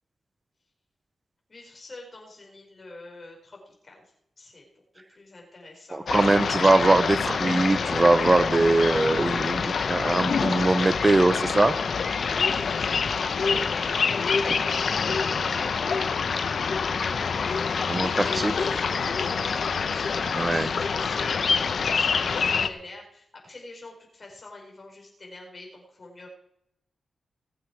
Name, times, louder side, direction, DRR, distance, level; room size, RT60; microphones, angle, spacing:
voice 1, 1.5-4.0 4.4-4.7 5.1-6.1 12.0-26.3, left 2 dB, 45° left, -1 dB, 5.1 m, -44 dB
voice 2, 5.9-11.8 17.9-18.5 20.3-20.7, right 2 dB, 25° right, 14 dB, 0.9 m, -22 dB
sound 1, 6.1-22.7, left 5 dB, 70° left, 0.9 m, -26 dB
20.5 x 7.8 x 4.8 m, 0.78 s
cardioid pair, 75°, 0 cm